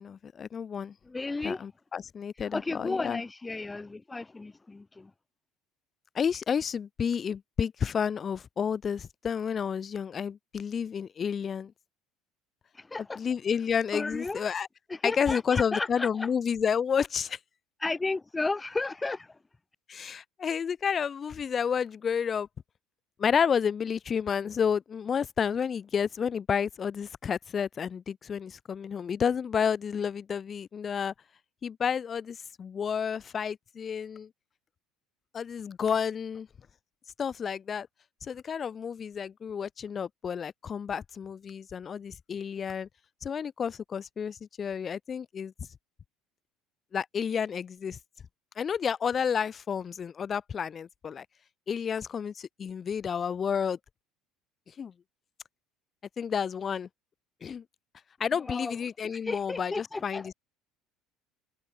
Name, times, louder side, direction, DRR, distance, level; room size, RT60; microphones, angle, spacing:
voice 1, 0.0-0.9 1.4-3.2 6.1-11.7 13.2-14.7 15.0-17.4 19.9-22.5 23.2-31.1 31.6-34.3 35.3-36.5 37.2-37.9 38.2-42.9 43.2-45.5 46.9-48.0 48.6-51.3 51.7-53.8 54.8-54.9 56.2-56.9 57.4-57.6 58.2-60.3, left 7 dB, 30° left, 2.7 m, -30 dB
voice 2, 1.1-1.6 2.4-5.1 12.7-13.2 13.9-14.5 14.9-16.3 17.8-19.4 58.5-60.3, left 3 dB, 15° left, 2.3 m, -34 dB
cardioid pair, 130°, 0 cm